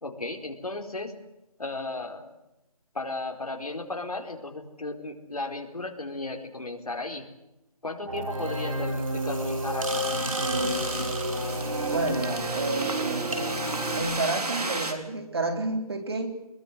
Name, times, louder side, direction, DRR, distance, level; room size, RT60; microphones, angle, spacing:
voice 1, 0.0-1.1 1.6-2.3 3.0-7.2 7.8-10.0, left 2 dB, 70° left, 3 dB, 4.5 m, -35 dB
sound 1, 8.1-14.0, right 1 dB, 60° right, 6.4 m, -30 dB
sound 2, 9.9-14.9, right 2 dB, 80° right, 4.2 m, -35 dB
voice 2, 11.8-13.3 14.0-16.3, right 3 dB, 40° right, 6 dB, 3.6 m, -30 dB
22.0 x 21.5 x 8.0 m, 0.92 s
figure-of-eight pair, 170°, 20 cm